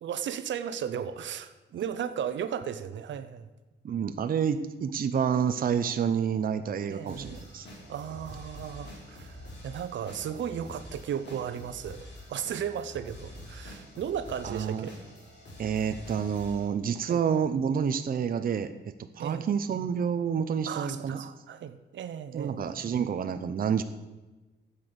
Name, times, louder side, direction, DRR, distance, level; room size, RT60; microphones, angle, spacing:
voice 1, 0.0-3.5 6.9-7.4 7.9-12.0 12.3-15.0 17.0-17.2 19.2-19.5 20.7-22.6, right 8 dB, 85° right, 11 dB, 0.9 m, -35 dB
voice 2, 3.8-7.7 14.4-14.9 15.6-18.7 19.1-21.3 22.3-23.8, right 7 dB, 50° right, 9 dB, 0.7 m, -28 dB
sound 1, 7.1-16.7, left 1 dB, 70° left, 4.8 m, -46 dB
12.5 x 8.3 x 6.9 m, 1.1 s
wide cardioid pair, 135°, 19 cm